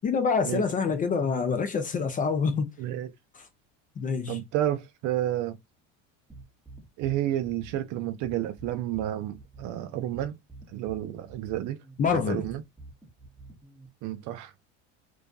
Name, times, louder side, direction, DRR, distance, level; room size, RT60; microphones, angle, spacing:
voice 1, 0.0-2.7 3.3-3.4 4.0-4.4 12.0-12.4, left 5 dB, 25° left, 0.3 m, -26 dB
voice 2, 2.8-3.1 4.3-5.6 7.0-10.3 10.7-11.8 12.3-12.6 14.0-14.5, right 13 dB, 55° right, 0.5 m, -30 dB
sound 1, 6.3-13.9, right 3 dB, 5° right, 0.7 m, -48 dB
2.5 x 2.3 x 2.2 m
supercardioid pair, 100°, 37 cm